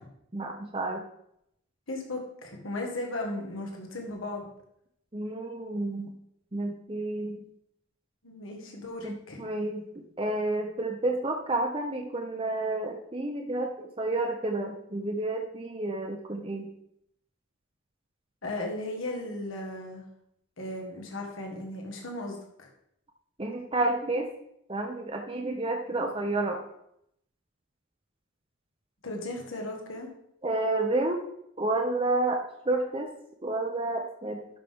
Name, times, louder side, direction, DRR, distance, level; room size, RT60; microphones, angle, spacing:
voice 1, 0.3-1.0 5.1-6.1 6.5-7.4 9.0-16.7 23.4-24.3 24.7-26.6 30.4-31.2 31.6-33.1 33.4-34.4, right 2 dB, 25° right, 2 dB, 0.8 m, -30 dB
voice 2, 1.9-4.4 8.2-9.4 18.4-20.0 20.6-22.7 29.0-30.1, left 2 dB, 70° left, 1 dB, 1.8 m, -36 dB
11.5 x 5.7 x 3.6 m, 0.75 s
head